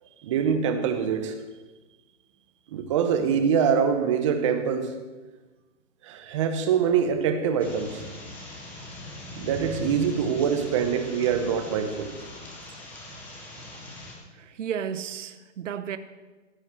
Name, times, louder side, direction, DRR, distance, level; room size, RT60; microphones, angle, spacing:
voice 1, 0.2-1.3 2.7-4.9 6.0-8.0 9.4-12.1, right 7 dB, 25° right, 7 dB, 0.9 m, -24 dB
sound 1, 7.6-14.1, left 2 dB, 5° left, 0.6 m, -40 dB
voice 2, 14.3-16.0, right 8 dB, 70° right, 11 dB, 0.9 m, -33 dB
15.5 x 5.5 x 7.6 m, 1.2 s
hypercardioid pair, 170°, 38 cm